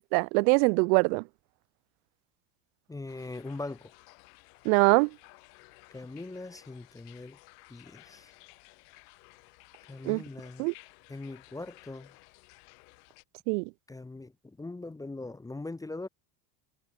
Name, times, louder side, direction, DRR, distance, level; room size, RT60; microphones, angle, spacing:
voice 1, 0.1-1.2 4.6-5.1 10.0-10.2 10.6-10.7 13.5-13.7, right 34 dB, 75° right, 0.6 m, -23 dB
voice 2, 2.9-3.9 5.9-7.4 7.7-8.3 9.9-10.6 11.1-12.1 13.9-14.3 14.6-16.1, left 2 dB, 5° left, 1.5 m, -41 dB
sound 1, 3.1-13.2, left 30 dB, 75° left, 4.5 m, -56 dB
cardioid pair, 160°, 47 cm